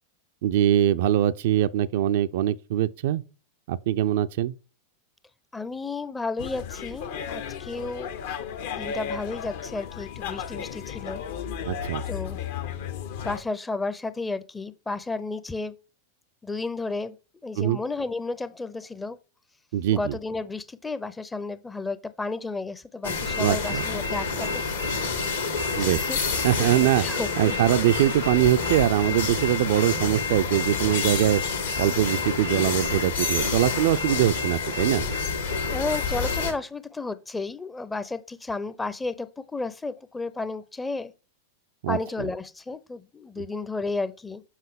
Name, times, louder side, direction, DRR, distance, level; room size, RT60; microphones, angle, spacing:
voice 1, 0.4-3.2 3.7-4.5 11.7-12.0 17.6-17.8 19.7-20.1 23.4-23.8 25.8-26.1 26.4-27.0 27.4-31.4 31.8-35.0 41.8-42.3, right 12 dB, 55° right, 0.3 m, -23 dB
voice 2, 5.5-8.1 8.7-11.2 12.1-12.4 13.2-15.7 16.4-17.2 17.4-19.2 19.9-24.7 25.8-26.5 26.7-27.7 35.7-41.1 41.9-44.4, left 3 dB, 10° left, 0.5 m, -32 dB
sound 1, 6.4-13.4, left 8 dB, 55° left, 0.7 m, -34 dB
sound 2, 23.0-36.5, left 4 dB, 70° left, 1.6 m, -28 dB
7.3 x 5.5 x 3.4 m
figure-of-eight pair, 90°, 0 cm